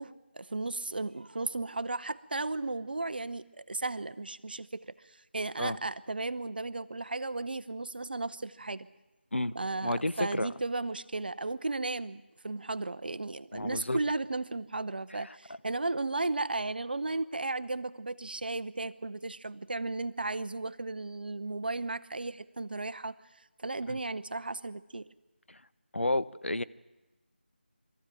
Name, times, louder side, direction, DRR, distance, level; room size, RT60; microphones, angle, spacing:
voice 1, 0.0-8.9 9.5-25.1, right 2 dB, 55° right, 14 dB, 0.8 m, -35 dB
voice 2, 9.8-10.5 13.5-14.0 23.9-24.0 25.5-25.6 25.9-26.6, left 1 dB, 90° left, 15 dB, 0.7 m, -31 dB
23.0 x 14.0 x 9.0 m, 1.1 s
figure-of-eight pair, 165°, 6 cm